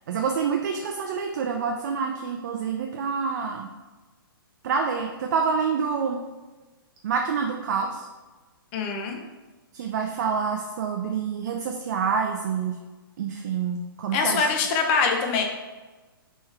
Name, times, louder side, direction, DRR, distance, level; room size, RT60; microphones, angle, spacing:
voice 1, 0.1-3.7 4.6-6.2 7.0-8.1 9.7-12.8 13.2-14.5, right 6 dB, 50° right, 3 dB, 0.3 m, -27 dB
voice 2, 8.7-9.2 14.1-15.4, left 4 dB, 25° left, 3 dB, 0.5 m, -23 dB
3.5 x 3.1 x 3.1 m, 1.2 s
hypercardioid pair, 155°, 12 cm